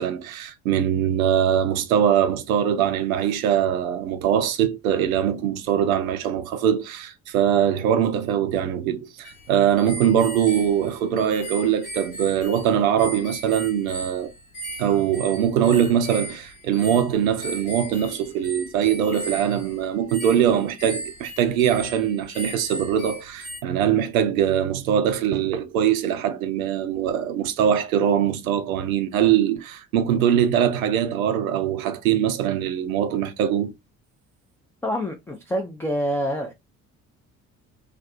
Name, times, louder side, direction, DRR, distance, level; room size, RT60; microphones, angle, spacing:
voice 1, 0.0-14.3 14.8-33.7, right 9 dB, 80° right, 0.5 m, -22 dB
sound 1, 9.2-23.6, right 2 dB, 85° left, 0.8 m, -37 dB
voice 2, 34.8-36.5, equal, 5° left, 0.3 m, -26 dB
2.4 x 2.3 x 2.5 m
figure-of-eight pair, 45°, 41 cm